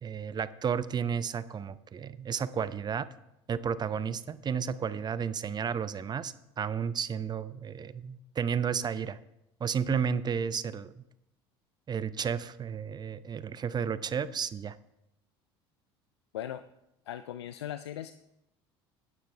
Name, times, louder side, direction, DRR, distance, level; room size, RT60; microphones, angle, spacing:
voice 1, 0.0-3.1 3.5-9.2 9.6-11.0 11.9-14.8, right 7 dB, 30° right, 15 dB, 0.7 m, -32 dB
voice 2, 17.1-18.1, left 11 dB, 90° left, 12 dB, 0.4 m, -38 dB
16.5 x 9.3 x 3.4 m, 0.87 s
hypercardioid pair, 75°, 14 cm